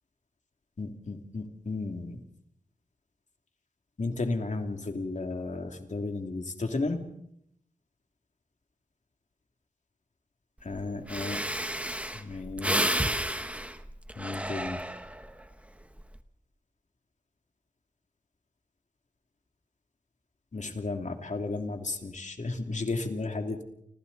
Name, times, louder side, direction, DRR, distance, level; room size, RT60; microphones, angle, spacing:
voice 1, 0.8-2.2 4.0-7.0 10.6-11.4 12.1-13.0 14.2-14.8 20.5-23.6, left 3 dB, 60° left, 4 dB, 2.8 m, -33 dB
Breathing, 10.7-10.8 11.1-15.3 15.8-16.2, right 1 dB, 10° right, 1.5 m, -31 dB
29.5 x 26.0 x 4.1 m, 0.73 s
wide cardioid pair, 75°, 14 cm